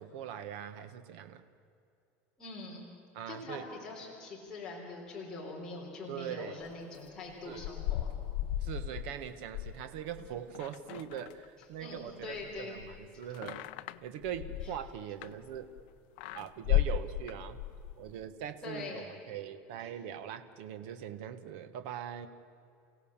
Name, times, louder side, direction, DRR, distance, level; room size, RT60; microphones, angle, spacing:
voice 1, 0.0-1.4 3.1-3.6 6.1-6.6 7.4-7.7 8.6-13.7 14.0-15.7 16.3-17.6 18.0-22.3, right 9 dB, 60° right, 10 dB, 1.3 m, -41 dB
voice 2, 2.4-2.8 3.3-8.1 11.8-12.7 14.6-14.7 18.6-19.0 19.8-19.9, left 3 dB, 10° left, -5 dB, 3.8 m, -43 dB
sound 1, 7.3-11.8 12.1-15.8 16.2-18.0, left 12 dB, 65° left, 0.6 m, -35 dB
29.5 x 16.5 x 7.3 m, 2.6 s
cardioid pair, 180°, 6 cm